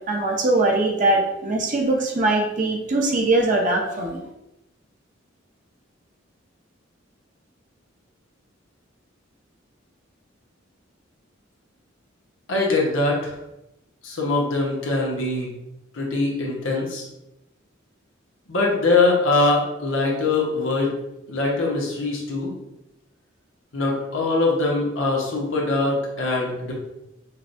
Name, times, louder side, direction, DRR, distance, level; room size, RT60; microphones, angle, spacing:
voice 1, 0.1-4.2, right 2 dB, 40° right, 0 dB, 0.6 m, -21 dB
voice 2, 12.5-13.3 14.0-15.5 15.9-17.1 18.5-20.9 21.3-22.5 23.7-26.7, left 3 dB, 85° left, -2 dB, 1.0 m, -22 dB
5.7 x 2.3 x 2.6 m, 0.88 s
head